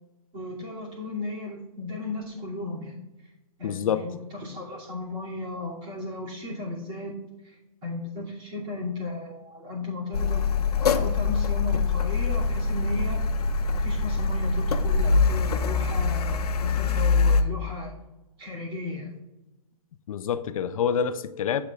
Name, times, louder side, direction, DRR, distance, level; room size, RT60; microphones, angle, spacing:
voice 1, 0.3-3.0 3.6-7.1 7.4-10.4 10.9-13.2 13.8-17.9 18.4-19.1, left 2 dB, 25° right, -3 dB, 2.6 m, -35 dB
voice 2, 3.6-4.0 20.1-21.6, left 8 dB, 60° left, 12 dB, 0.5 m, -27 dB
Car, 10.1-17.4, left 4 dB, 80° left, 0.9 m, -24 dB
12.0 x 6.9 x 2.4 m, 1.0 s
hypercardioid pair, 145°, 19 cm